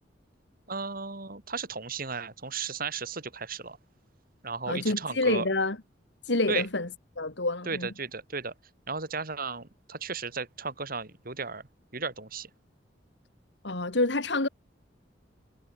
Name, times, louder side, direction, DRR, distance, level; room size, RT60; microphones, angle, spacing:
voice 1, 0.7-3.8 4.4-5.5 6.5-6.7 7.7-8.5 8.9-11.6 11.9-12.5, right 4 dB, 55° right, 3.4 m, -34 dB
voice 2, 4.7-5.8 6.3-6.9 7.2-7.9 13.6-14.5, left 2 dB, 75° left, 2.3 m, -27 dB
head